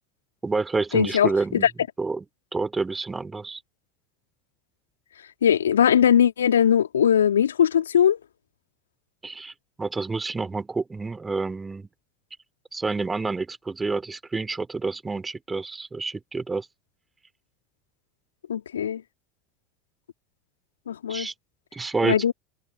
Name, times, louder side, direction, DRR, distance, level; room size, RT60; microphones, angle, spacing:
voice 1, 0.4-1.7 2.0-2.2 2.5-3.6 9.2-9.5 9.8-11.9 12.7-16.7 21.1-21.3 21.7-22.3, right 3 dB, 15° right, 3.3 m, -28 dB
voice 2, 0.9-1.7 5.4-8.2 18.5-19.0 20.9-21.3 22.0-22.3, left 9 dB, 75° left, 3.0 m, -20 dB
figure-of-eight pair, 75°, 0 cm